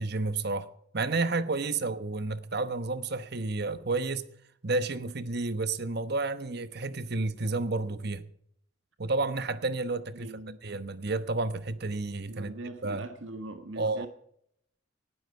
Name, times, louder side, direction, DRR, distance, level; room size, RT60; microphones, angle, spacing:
voice 1, 0.0-4.3 4.6-8.2 9.0-10.3 10.6-12.5 12.8-13.1 13.8-14.1, right 3 dB, 55° right, 1.1 m, -31 dB
voice 2, 10.1-10.6 12.3-14.1, right 2 dB, 85° right, 1.6 m, -41 dB
19.5 x 12.0 x 4.7 m
head